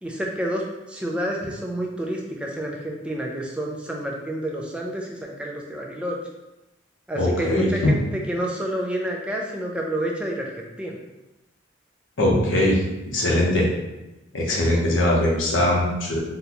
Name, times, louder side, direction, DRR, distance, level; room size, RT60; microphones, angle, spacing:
voice 1, 0.0-6.2 7.1-11.0, right 1 dB, 5° right, -1 dB, 0.4 m, -29 dB
voice 2, 7.1-7.9 12.2-12.8 13.1-13.7 14.3-16.2, left 1 dB, 70° left, -2 dB, 0.8 m, -21 dB
3.8 x 2.2 x 2.9 m, 1.0 s
head